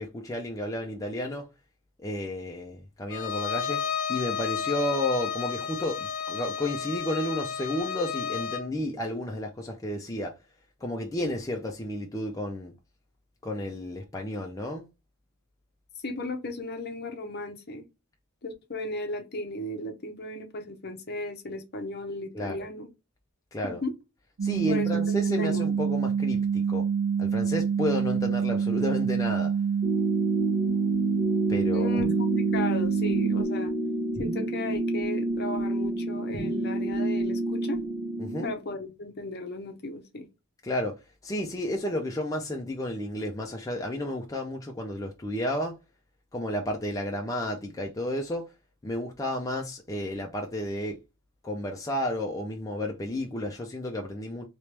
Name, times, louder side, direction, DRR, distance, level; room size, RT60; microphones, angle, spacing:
voice 1, 0.0-1.5 2.0-3.8 4.1-10.3 10.8-12.7 13.4-14.8 22.3-22.6 23.5-23.8 24.4-26.9 27.2-29.5 31.5-32.0 38.2-38.5 40.6-45.8 46.3-48.5 48.8-51.0 51.4-54.5, left 1 dB, 15° left, 0.4 m, -32 dB
Bowed string instrument, 3.1-8.7, left 7 dB, 90° left, 0.5 m, -32 dB
voice 2, 16.0-17.8 18.4-22.9 23.6-23.9 24.7-25.7 31.7-33.7 34.2-37.8 38.4-40.3, left 2 dB, 50° left, 0.8 m, -35 dB
sound 1, 24.4-33.4, right 6 dB, 85° right, 0.4 m, -26 dB
sound 2, 29.8-38.5, right 1 dB, 60° right, 0.8 m, -30 dB
3.1 x 3.0 x 3.2 m
head